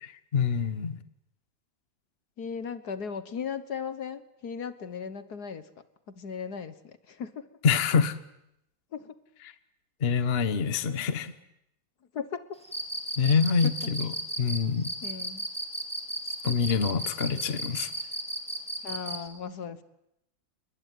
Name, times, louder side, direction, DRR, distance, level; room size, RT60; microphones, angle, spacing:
voice 1, 0.0-1.0 7.6-8.2 10.0-11.3 13.2-14.1 14.4-14.9 16.4-17.9, left 6 dB, 35° left, 12 dB, 1.3 m, -26 dB
voice 2, 2.4-5.7 6.1-7.5 8.9-9.2 12.1-12.4 13.6-13.7 15.0-15.5 18.8-19.8, left 6 dB, 55° left, 13 dB, 1.8 m, -37 dB
Cricket, 12.6-19.2, right 1 dB, 5° left, 3.4 m, -34 dB
30.0 x 21.5 x 9.3 m, 0.82 s
omnidirectional pair, 2.1 m